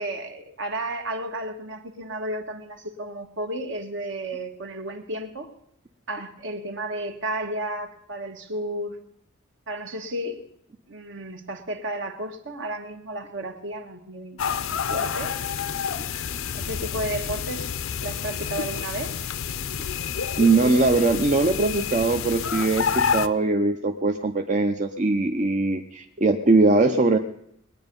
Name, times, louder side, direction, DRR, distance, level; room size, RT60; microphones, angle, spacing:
voice 1, 0.0-5.5 6.1-9.0 9.7-10.4 10.9-15.3 16.5-17.7 18.0-19.1, right 1 dB, 60° right, 5 dB, 1.5 m, -33 dB
sound 1, 14.4-23.3, left 7 dB, 75° left, 0.6 m, -29 dB
voice 2, 20.4-27.2, right 3 dB, 35° right, 4 dB, 0.6 m, -21 dB
20.5 x 9.7 x 5.3 m, 0.74 s
head